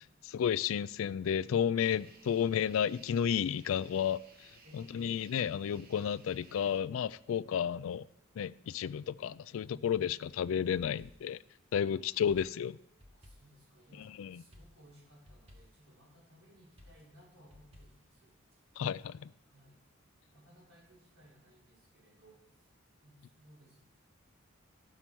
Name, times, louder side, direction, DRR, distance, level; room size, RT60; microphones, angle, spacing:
voice 1, 0.3-4.2 4.7-8.0 8.4-11.4 11.7-12.8 14.2-14.3 18.8-19.2, left 8 dB, 75° left, 0.3 m, -32 dB
sound 1, 1.8-6.8, right 4 dB, 45° right, 1.1 m, -60 dB
voice 2, 4.6-5.0 9.7-10.1 11.9-12.0 13.1-18.4 19.0-19.8 20.3-22.7 23.0-23.8, equal, 80° right, 5.0 m, -61 dB
sound 2, 10.8-11.5 12.3-14.1 14.5-16.0 16.8-18.6, left 1 dB, 30° right, 1.4 m, -59 dB
13.5 x 5.6 x 6.1 m
head